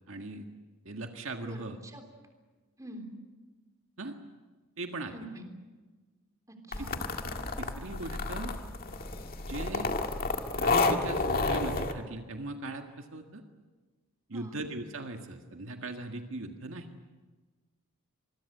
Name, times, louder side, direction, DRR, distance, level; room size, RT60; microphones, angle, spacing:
voice 1, 0.1-0.5 0.8-1.8 4.0-4.1 4.8-5.1 7.6-8.5 9.4-9.9 10.6-13.4 14.3-16.9, right 2 dB, 65° right, 4 dB, 1.8 m, -39 dB
voice 2, 1.4-2.0 2.8-3.1 5.1-5.4 6.5-6.9 14.3-14.6, right 1 dB, 15° right, 4 dB, 3.4 m, -45 dB
sound 1, 6.7-11.9, left 3 dB, 45° left, 1.9 m, -30 dB
26.0 x 22.0 x 8.1 m, 1.3 s
head